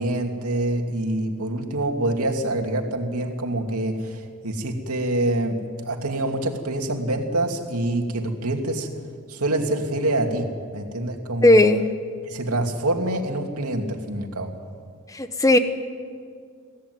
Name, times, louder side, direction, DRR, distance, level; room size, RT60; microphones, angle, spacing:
voice 1, 0.0-8.9 9.3-11.6 12.2-14.5, right 1 dB, 85° right, 3 dB, 2.6 m, -26 dB
voice 2, 11.4-11.9 15.2-15.6, left 2 dB, 15° left, 9 dB, 1.0 m, -15 dB
23.5 x 17.0 x 9.5 m, 2.1 s
head